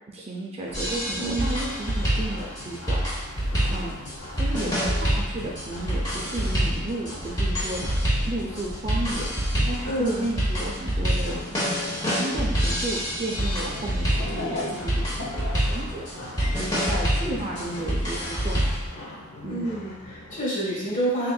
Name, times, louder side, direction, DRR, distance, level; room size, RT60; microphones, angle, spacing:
voice 1, 0.1-3.0 3.7-4.0 4.4-7.8 8.3-9.3 9.7-11.4 12.1-16.1 16.5-18.6 19.4-19.8, right 2 dB, 25° right, -3 dB, 0.4 m, -33 dB
sound 1, 0.7-20.4, left 1 dB, 85° left, 0.8 m, -39 dB
sound 2, 0.7-18.9, equal, 15° left, 0.9 m, -26 dB
voice 2, 1.2-1.5 9.8-10.3 19.4-21.3, right 1 dB, 35° left, -7 dB, 1.3 m, -28 dB
sound 3, 13.6-18.9, left 2 dB, 55° left, 1.2 m, -37 dB
4.2 x 3.5 x 2.3 m, 1.0 s
head